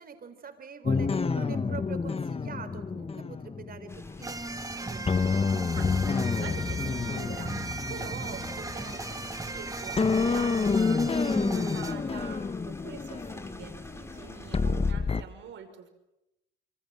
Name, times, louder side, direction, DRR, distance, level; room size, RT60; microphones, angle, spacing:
voice 1, 0.0-5.1, right 5 dB, 50° right, 9 dB, 4.2 m, -44 dB
sound 1, 0.9-4.6 5.1-9.6 10.0-15.2, left 4 dB, 30° left, 1.2 m, -29 dB
sound 2, 3.9-14.9, left 1 dB, 15° left, 3.0 m, -46 dB
sound 3, 4.2-11.9, right 3 dB, 15° right, 2.2 m, -37 dB
voice 2, 5.4-15.9, right 7 dB, 70° right, 7 dB, 5.7 m, -45 dB
27.0 x 24.0 x 7.6 m, 0.89 s
cardioid pair, 90°, 20 cm